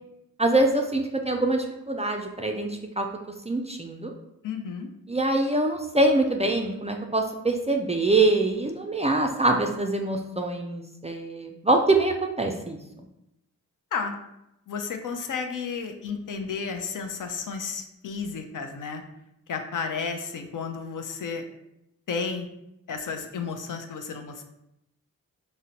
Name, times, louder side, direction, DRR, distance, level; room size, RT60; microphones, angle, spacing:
voice 1, 0.4-3.1 3.5-4.1 5.1-12.8, right 2 dB, 20° right, 2 dB, 0.3 m, -24 dB
voice 2, 4.4-4.9 13.9-14.1 14.7-19.0 19.5-21.4 22.1-22.5 22.9-24.4, left 5 dB, 60° left, 5 dB, 0.5 m, -32 dB
3.7 x 2.1 x 2.8 m, 0.84 s
cardioid pair, 45°, 36 cm